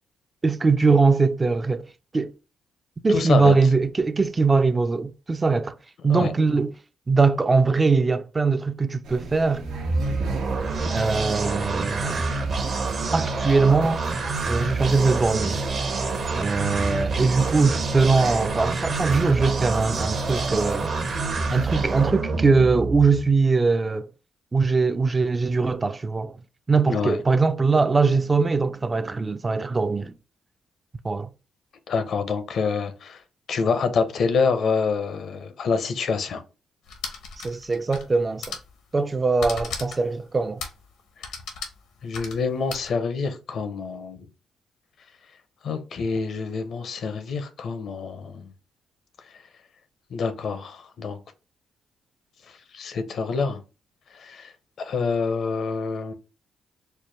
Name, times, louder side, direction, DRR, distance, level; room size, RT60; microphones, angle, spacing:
voice 1, 0.4-1.8 2.1-2.3 3.0-5.8 6.0-6.7 7.1-9.6 10.9-12.3 13.1-14.0 14.5-15.7 16.4-21.0 21.5-24.1 24.5-26.4 26.7-30.1 31.0-31.3 37.4-38.6 38.9-40.6, right 4 dB, 30° right, 0.3 m, -21 dB
voice 2, 3.1-3.5 6.1-6.3 26.9-27.2 31.9-33.2 33.5-36.4 42.0-44.3 45.6-48.5 50.1-51.2 52.5-53.6 54.1-54.5 54.8-56.1, left 5 dB, 65° left, 0.6 m, -26 dB
sound 1, 9.0-22.1, right 3 dB, 80° right, 0.6 m, -38 dB
sound 2, 9.5-23.3, right 3 dB, 55° right, 0.9 m, -27 dB
sound 3, 36.9-38.1 38.4-38.7 39.4-40.1 40.6-40.8 41.2-42.9, left 5 dB, 85° left, 0.9 m, -35 dB
4.5 x 2.1 x 3.2 m
supercardioid pair, 65°, 0 cm